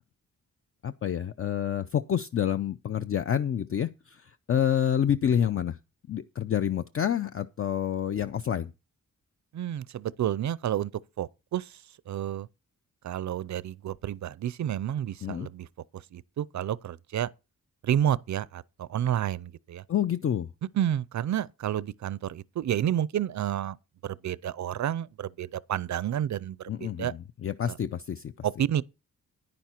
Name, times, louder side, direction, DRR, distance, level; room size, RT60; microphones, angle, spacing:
voice 1, 0.8-5.8 6.1-8.7 15.2-15.5 19.9-20.5 26.7-28.3, left 9 dB, 45° left, 0.5 m, -28 dB
voice 2, 9.5-10.9 11.2-11.8 12.1-12.5 13.0-15.7 15.9-17.3 17.8-19.8 20.7-23.8 24.0-27.1 27.6-27.8 28.4-28.8, right 10 dB, 65° right, 0.5 m, -30 dB
10.5 x 9.9 x 4.3 m
wide cardioid pair, 160°, 32 cm